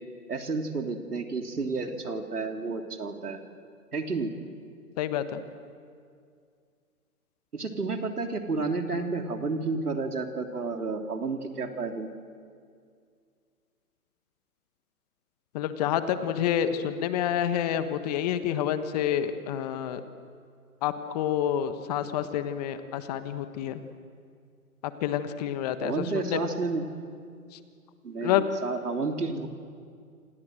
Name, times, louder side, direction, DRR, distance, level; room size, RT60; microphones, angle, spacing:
voice 1, 0.3-3.4 3.9-4.3 7.5-12.1 25.8-26.8 28.0-29.5, right 3 dB, 80° right, 4 dB, 3.4 m, -31 dB
voice 2, 5.0-5.4 15.5-20.0 20.8-23.8 25.0-26.4 28.2-28.4, left 10 dB, 25° left, 10 dB, 1.3 m, -28 dB
28.0 x 26.5 x 7.8 m, 2.2 s
figure-of-eight pair, 135°, 45 cm